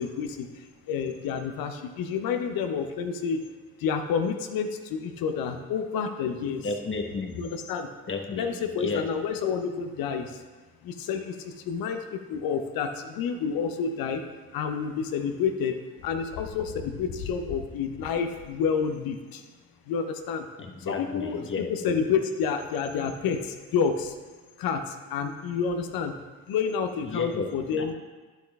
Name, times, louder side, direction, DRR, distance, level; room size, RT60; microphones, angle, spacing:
voice 1, 0.0-3.4 3.8-6.7 7.4-7.9 8.3-10.4 10.8-14.2 14.5-15.7 16.0-19.4 19.9-20.5 20.8-24.1 24.6-26.2 26.5-27.9, left 6 dB, 50° left, 7 dB, 0.8 m, -29 dB
voice 2, 6.6-7.4 8.1-8.5 8.8-9.1 20.6-21.7 27.0-27.5 27.8-27.9, left 4 dB, 25° left, 3 dB, 1.1 m, -32 dB
11.5 x 6.7 x 2.3 m, 1.3 s
figure-of-eight pair, 50°, 46 cm